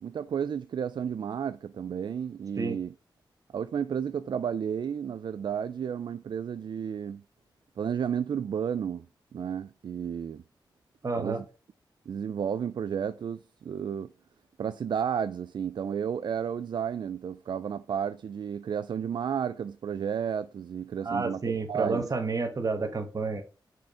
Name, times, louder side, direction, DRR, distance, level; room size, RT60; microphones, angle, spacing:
voice 1, 0.0-2.9 3.5-7.2 7.8-9.1 9.3-10.4 11.2-11.4 12.1-14.1 14.6-22.1, right 8 dB, 65° right, 0.3 m, -32 dB
voice 2, 11.0-11.4 21.0-23.4, right 3 dB, 45° right, 1.2 m, -30 dB
6.1 x 4.4 x 4.7 m
wide cardioid pair, 85°, 8 cm